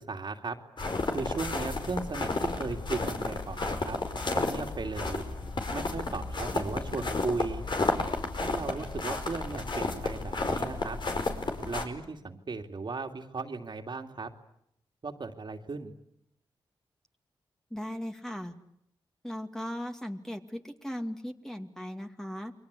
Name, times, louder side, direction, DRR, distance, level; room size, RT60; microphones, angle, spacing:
voice 1, 0.1-0.6 1.1-4.0 4.3-5.2 5.7-7.7 8.3-11.0 11.6-14.3 15.0-15.9, right 4 dB, 55° right, 4 dB, 2.8 m, -36 dB
sound 1, 0.8-11.8, left 3 dB, 55° left, 4.9 m, -32 dB
voice 2, 17.7-18.5 19.2-22.5, equal, 5° left, 5 dB, 2.4 m, -38 dB
29.5 x 23.0 x 8.4 m, 0.75 s
cardioid pair, 60°, 9 cm